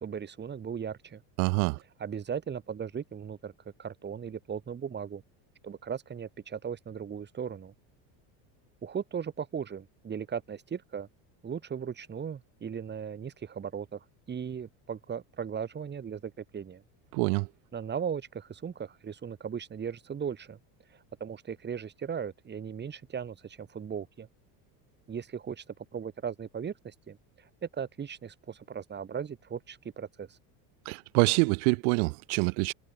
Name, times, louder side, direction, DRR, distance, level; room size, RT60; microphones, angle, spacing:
voice 1, 0.0-1.2 2.0-3.5 3.8-5.2 5.6-7.7 8.8-11.1 11.4-16.8 17.7-20.6 20.9-24.3 25.1-30.4, right 7 dB, 25° right, 2.9 m, -37 dB
voice 2, 1.4-1.8 17.1-17.5 30.8-32.7, right 36 dB, 75° right, 1.2 m, -26 dB
cardioid pair, 140°, 45 cm